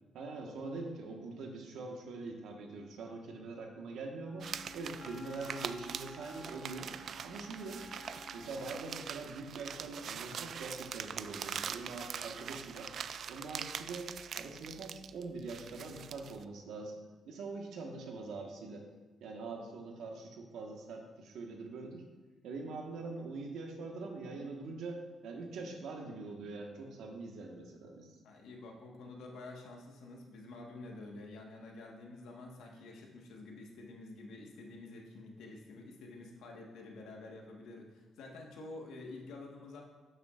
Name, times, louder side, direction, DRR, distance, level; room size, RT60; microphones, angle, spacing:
voice 1, 0.1-4.5 4.7-6.9 7.2-7.8 8.3-12.9 13.3-14.1 14.3-17.0 17.3-18.8 19.2-22.0 22.4-28.2, right 3 dB, 80° right, 1 dB, 1.4 m, -43 dB
Wind instrument woodwind instrument, 4.2-9.0, left 3 dB, 40° left, 0.5 m, -53 dB
sound 1, 4.4-16.4, right 7 dB, 60° right, 0.3 m, -43 dB
voice 2, 28.2-39.8, left 2 dB, 85° left, 0 dB, 1.5 m, -49 dB
12.0 x 7.2 x 2.5 m, 1.2 s
cardioid pair, 90°, 0 cm